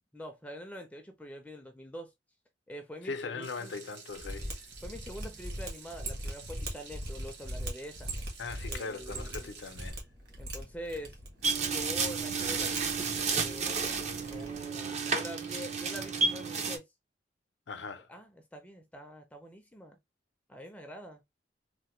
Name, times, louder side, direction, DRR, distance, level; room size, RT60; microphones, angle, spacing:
voice 1, 0.1-2.1 2.7-3.7 4.8-8.1 8.7-9.5 10.4-11.2 11.7-16.9 18.1-20.0 20.5-21.2, equal, 10° left, 0.4 m, -45 dB
voice 2, 3.0-4.5 8.4-10.0 17.7-18.1, left 4 dB, 75° left, 0.5 m, -40 dB
Water tap faucet / Sink (filling or washing), 3.4-9.9, right 5 dB, 80° right, 1.0 m, -51 dB
Mechanisms, 4.2-14.6, right 1 dB, 60° right, 1.1 m, -41 dB
sound 1, 11.4-16.8, right 4 dB, 40° right, 0.5 m, -31 dB
3.3 x 2.1 x 3.0 m
head